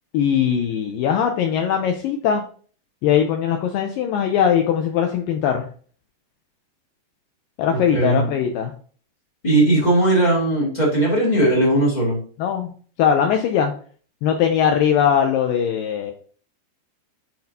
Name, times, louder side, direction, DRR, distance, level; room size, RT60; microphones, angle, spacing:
voice 1, 0.1-2.4 3.0-5.7 7.6-8.7 12.4-12.7 13.0-13.7 14.2-16.1, left 8 dB, 85° left, 4 dB, 2.0 m, -20 dB
voice 2, 7.9-8.2 9.4-12.2, right 1 dB, 20° left, -4 dB, 1.2 m, -18 dB
10.5 x 4.3 x 2.8 m, 0.43 s
omnidirectional pair, 4.7 m